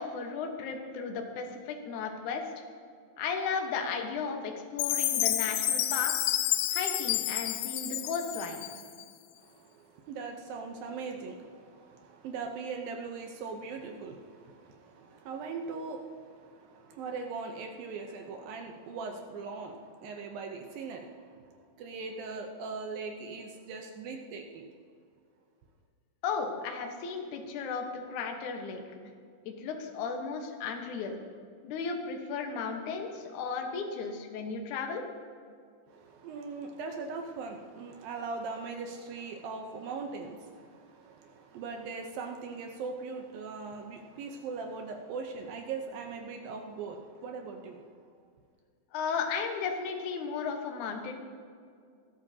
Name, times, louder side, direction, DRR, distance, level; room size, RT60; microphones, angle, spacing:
voice 1, 0.0-2.4 3.2-6.3 6.7-8.7 26.2-28.8 29.5-31.2 31.6-35.0 48.9-51.2, left 5 dB, 65° left, 3 dB, 2.2 m, -35 dB
Chime, 4.8-9.0, left 13 dB, 90° left, 2.0 m, -30 dB
voice 2, 9.4-24.7 35.9-48.1, right 4 dB, 75° right, 3 dB, 2.3 m, -40 dB
20.5 x 12.5 x 2.8 m, 2.2 s
omnidirectional pair, 4.7 m